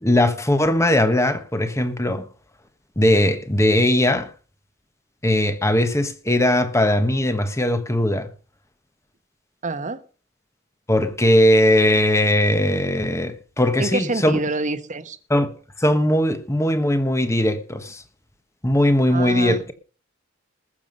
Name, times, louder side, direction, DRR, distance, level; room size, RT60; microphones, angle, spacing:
voice 1, 0.0-2.2 3.0-4.3 5.2-8.3 10.9-14.4 15.3-15.5 15.8-18.0 18.6-19.7, left 1 dB, 15° left, 1.4 m, -19 dB
voice 2, 9.6-10.0 13.8-15.2 19.1-19.6, right 2 dB, 40° right, 1.2 m, -26 dB
20.0 x 7.2 x 5.3 m
head